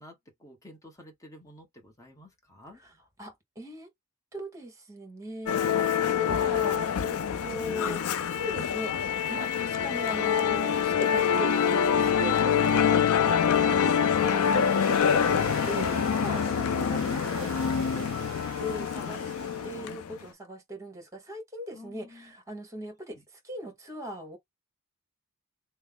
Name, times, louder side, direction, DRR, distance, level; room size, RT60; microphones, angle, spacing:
voice 1, 0.0-2.8 5.7-6.2 13.1-13.2 21.7-22.3 23.1-23.2, left 2 dB, 15° left, 1.1 m, -51 dB
voice 2, 3.2-3.9 4.3-5.7 6.1-18.3 18.6-19.3 19.6-24.4, equal, 15° right, 1.5 m, -39 dB
Musical instrument, 5.5-20.1, left 7 dB, 70° left, 0.4 m, -26 dB
sound 1, 13.0-20.0, right 7 dB, 65° right, 0.6 m, -44 dB
3.1 x 2.0 x 3.6 m
head